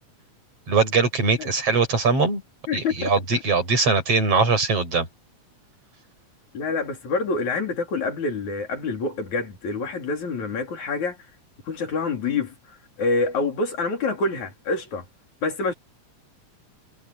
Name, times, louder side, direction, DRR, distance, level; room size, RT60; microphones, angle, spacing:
voice 1, 0.7-2.4 2.7-5.1, right 4 dB, 50° right, 8.0 m, -21 dB
voice 2, 2.7-3.1 6.5-11.2 11.7-15.0 15.4-15.7, left 3 dB, 65° left, 5.1 m, -27 dB
omnidirectional pair, 3.5 m